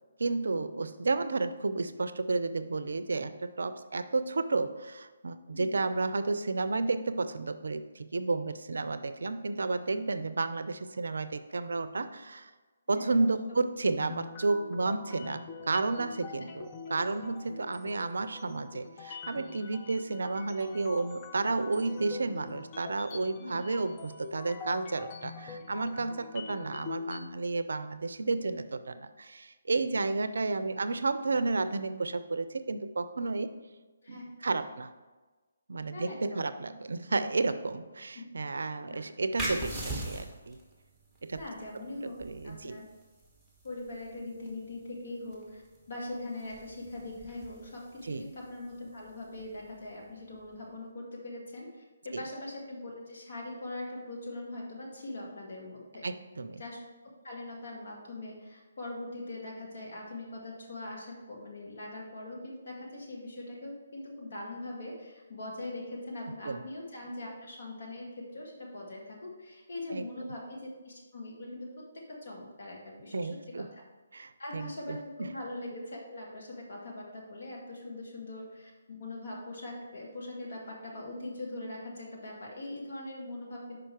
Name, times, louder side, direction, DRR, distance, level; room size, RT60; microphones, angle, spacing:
voice 1, 0.2-12.5 12.9-33.6 34.1-34.9 35.7-40.6 41.2-41.4 42.0-42.8 48.0-48.3 52.1-52.2 56.0-56.6 66.5-66.7 69.9-70.1 73.1-73.7 74.1-75.3, right 3 dB, 70° right, 12 dB, 0.4 m, -32 dB
sound 1, 14.0-27.3, left 5 dB, 25° left, 0.5 m, -44 dB
voice 2, 35.9-36.4 38.1-38.2 38.8-39.1 41.3-42.9 43.6-45.6 45.9-56.0 56.6-56.8 57.2-71.7 72.2-73.3 73.7-73.8 74.4-83.8, left 2 dB, 55° left, -2 dB, 1.9 m, -41 dB
sound 2, 39.4-50.6, right 1 dB, ahead, 1.2 m, -43 dB
5.7 x 5.0 x 4.5 m, 1.3 s
figure-of-eight pair, 145°, 0 cm